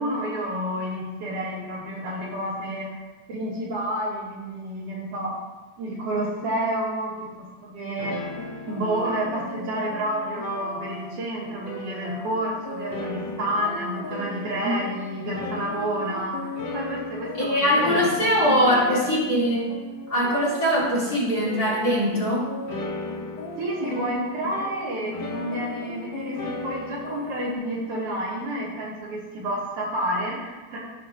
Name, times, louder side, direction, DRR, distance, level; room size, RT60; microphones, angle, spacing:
voice 1, 0.0-3.0 3.3-5.3 5.8-7.1 7.4-8.3 8.6-19.1 23.6-30.8, right 1 dB, 75° right, -8 dB, 4.4 m, -30 dB
sound 1, 8.0-27.5, left 3 dB, 70° left, 1.0 m, -36 dB
voice 2, 17.4-19.8 20.1-22.5, equal, 30° left, -7 dB, 2.4 m, -22 dB
17.5 x 5.9 x 2.8 m, 1.2 s
omnidirectional pair, 3.5 m